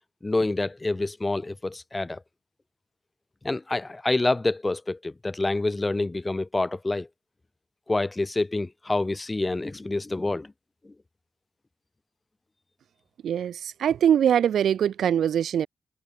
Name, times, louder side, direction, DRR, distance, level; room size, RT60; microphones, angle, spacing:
voice 1, 0.2-2.2 3.4-7.1 7.9-10.5 10.8-10.9, left 2 dB, 20° left, 3.5 m, -27 dB
voice 2, 13.2-15.7, right 9 dB, 80° right, 1.8 m, -22 dB
cardioid pair, 75°, 0 cm